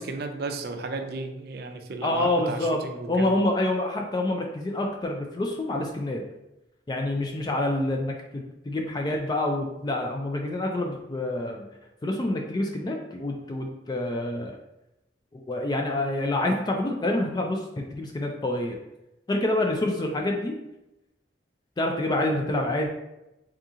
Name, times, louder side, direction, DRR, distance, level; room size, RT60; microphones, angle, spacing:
voice 1, 0.0-3.3, right 3 dB, 60° right, 6 dB, 0.4 m, -34 dB
voice 2, 2.0-2.8 3.1-6.2 6.9-11.6 12.0-14.5 15.3-18.8 19.3-20.5 21.8-22.9, left 1 dB, 25° left, 2 dB, 0.4 m, -27 dB
3.6 x 2.8 x 3.6 m, 0.92 s
head